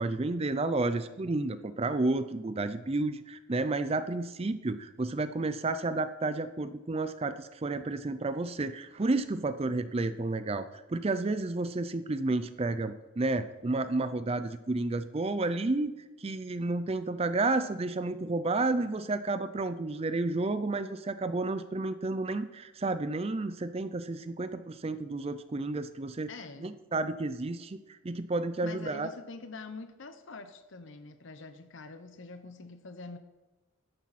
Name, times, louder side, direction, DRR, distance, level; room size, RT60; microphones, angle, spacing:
voice 1, 0.0-26.3 26.6-29.1, right 2 dB, 25° right, 0.4 m, -31 dB
voice 2, 26.3-26.7 28.6-33.2, left 3 dB, 60° left, 0.8 m, -45 dB
13.5 x 10.0 x 4.2 m
head